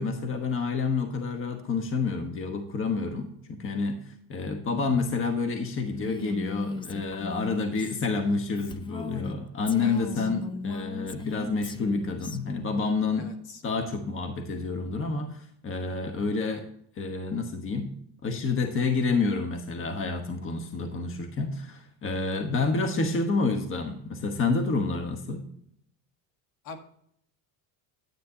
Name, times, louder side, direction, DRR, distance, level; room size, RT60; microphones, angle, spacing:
voice 1, 0.0-13.3 13.6-16.7 17.0-17.9 18.2-25.5, left 4 dB, 30° left, 6 dB, 1.2 m, -29 dB
Female speech woman speaking, 5.9-9.3 9.7-12.4, left 4 dB, 15° left, 0.3 m, -37 dB
voice 2, 9.8-10.3 13.2-13.6 26.6-26.8, left 4 dB, 60° left, 6 dB, 1.7 m, -43 dB
9.7 x 9.4 x 2.8 m, 0.68 s
cardioid pair, 120°, 40 cm